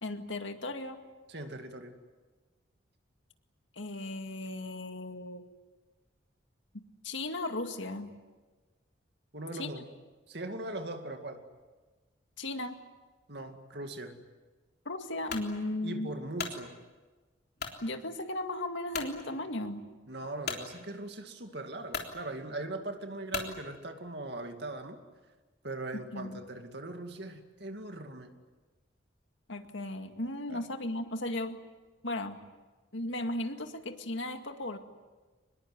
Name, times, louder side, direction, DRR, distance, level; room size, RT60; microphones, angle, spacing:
voice 1, 0.0-1.0 3.8-5.4 7.0-8.1 9.6-9.7 12.4-12.8 14.9-16.1 17.8-19.9 26.1-26.4 29.5-31.6 32.0-32.4 32.9-34.8, left 1 dB, 75° left, 6 dB, 2.1 m, -36 dB
voice 2, 1.3-2.0 9.3-9.8 10.3-11.4 13.3-14.2 15.8-16.8 20.1-25.0 25.6-28.3 30.5-30.6, right 2 dB, 55° right, 5 dB, 2.4 m, -40 dB
sound 1, 15.3-15.5 16.1-16.6 17.6-17.8 18.4-18.5 18.9-19.1 20.5-20.6 21.4-21.5 21.9-22.1 23.3-23.6, left 5 dB, 55° left, 3.5 m, -36 dB
24.5 x 21.5 x 9.5 m, 1.3 s
head